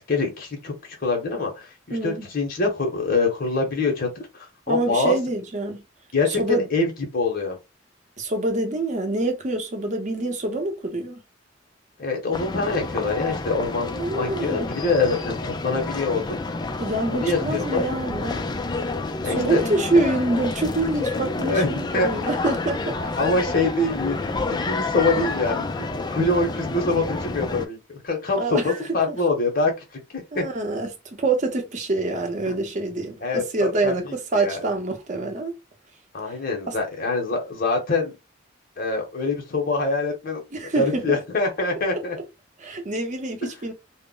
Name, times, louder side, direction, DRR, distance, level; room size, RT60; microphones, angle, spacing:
voice 1, 0.1-5.2 6.1-7.6 12.0-16.4 17.1-17.9 19.2-19.7 21.4-22.1 23.0-25.8 26.1-29.7 30.1-30.5 32.5-32.6 33.2-34.6 36.1-38.2 38.8-40.4 40.7-42.2 43.4-43.5, left 3 dB, 50° left, 0.7 m, -25 dB
voice 2, 1.9-2.3 4.7-5.8 6.3-6.7 8.2-11.2 14.0-14.8 16.8-18.4 19.2-23.2 28.4-28.8 29.1-29.2 30.3-35.5 36.7-36.8 40.5-41.0 42.6-43.7, right 2 dB, 40° right, 0.7 m, -26 dB
sound 1, 12.3-27.7, left 3 dB, 20° left, 0.3 m, -29 dB
2.1 x 2.0 x 3.7 m
head